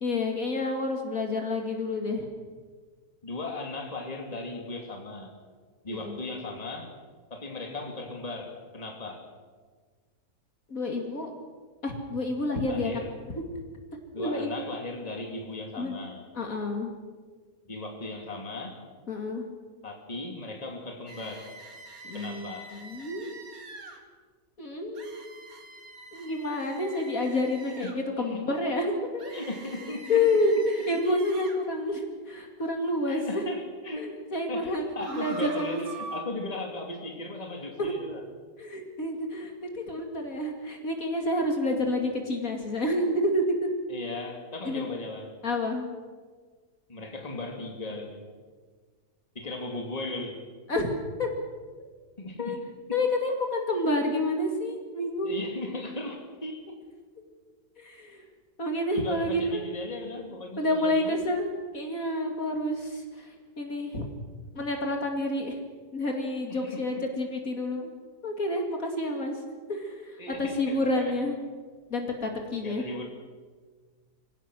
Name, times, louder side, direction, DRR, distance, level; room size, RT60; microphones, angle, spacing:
voice 1, 0.0-2.3 5.9-6.2 10.7-11.3 11.8-12.9 14.2-14.5 15.7-15.9 16.3-16.9 19.1-19.5 22.1-23.4 24.6-25.3 26.1-29.3 30.1-33.4 34.0-35.8 37.8-37.9 38.6-43.7 44.7-44.8 45.4-45.8 50.7-50.9 51.2-51.3 52.4-52.6 52.9-55.4 57.8-58.2 58.6-59.6 60.6-64.1 64.5-65.6 65.9-67.9 68.2-69.4 69.7-71.4 71.9-72.8, left 1 dB, 55° left, 3 dB, 2.9 m, -29 dB
voice 2, 3.2-5.3 5.8-6.9 7.3-9.2 12.7-13.1 14.1-16.2 17.6-18.8 19.8-21.5 22.1-22.7 27.8-28.0 28.3-28.4 29.3-30.2 33.1-34.2 34.5-38.2 43.9-45.3 46.9-48.2 49.3-50.4 52.2-52.6 55.2-56.8 58.9-61.2 66.5-67.0 70.2-71.2 72.6-73.1, left 2 dB, 20° left, 2 dB, 2.6 m, -37 dB
sound 1, 21.1-24.0 25.0-28.0 29.2-31.6 35.0-36.2, right 2 dB, 60° right, 2.6 m, -45 dB
25.5 x 16.5 x 6.3 m, 1.5 s
omnidirectional pair, 1.8 m